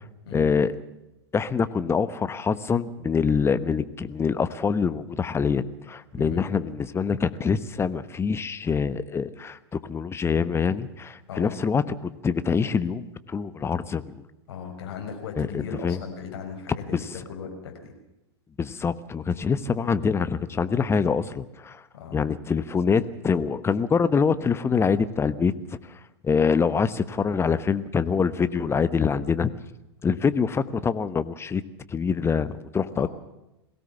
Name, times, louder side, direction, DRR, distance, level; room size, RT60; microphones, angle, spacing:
voice 1, 0.3-0.7 1.3-14.2 15.4-16.0 16.9-17.0 18.6-21.8 22.1-25.8 26.2-29.5 30.0-31.6 31.9-33.1, left 5 dB, 20° left, 14 dB, 1.1 m, -25 dB
voice 2, 14.5-17.9 21.9-22.2 32.9-33.1, left 6 dB, 65° left, 3 dB, 5.8 m, -37 dB
22.5 x 17.0 x 7.1 m, 0.93 s
hypercardioid pair, 95°, 14 cm